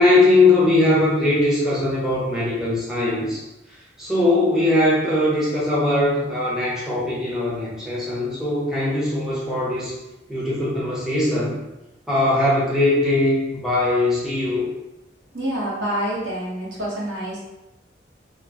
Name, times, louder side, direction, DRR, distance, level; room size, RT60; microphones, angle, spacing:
voice 1, 0.0-3.4 3.7-10.0 10.3-11.6 12.1-14.7, left 2 dB, ahead, -8 dB, 0.6 m, -20 dB
voice 2, 15.3-17.4, right 1 dB, 75° right, -6 dB, 1.0 m, -27 dB
2.9 x 2.3 x 2.4 m, 0.96 s
head